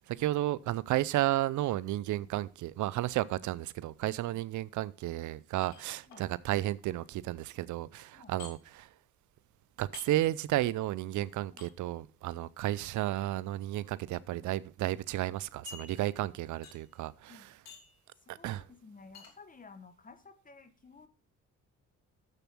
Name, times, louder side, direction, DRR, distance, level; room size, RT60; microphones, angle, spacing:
voice 1, 0.1-8.9 9.8-17.4 18.3-18.7, right 15 dB, 75° right, 0.5 m, -33 dB
sound 1, 5.6-6.2 8.4-8.5 9.9-10.1 11.6-11.7 13.0-13.3 14.1-14.2 14.5-14.6 15.7-16.3 16.6-17.0 17.7-18.0 19.1-19.3, left 5 dB, 65° left, 3.0 m, -49 dB
voice 2, 18.3-21.1, left 4 dB, 25° left, 1.3 m, -54 dB
7.2 x 6.8 x 6.0 m
cardioid pair, 90°, 30 cm